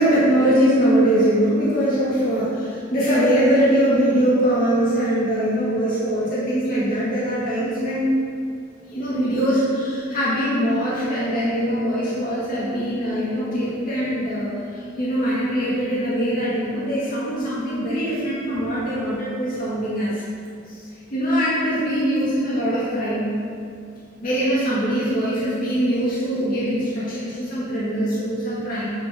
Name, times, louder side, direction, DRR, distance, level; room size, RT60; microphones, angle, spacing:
voice 1, 0.0-8.1 8.9-20.2 20.7-23.3 24.2-28.9, equal, 45° left, -9 dB, 2.2 m, -22 dB
9.4 x 8.0 x 3.8 m, 2.3 s
head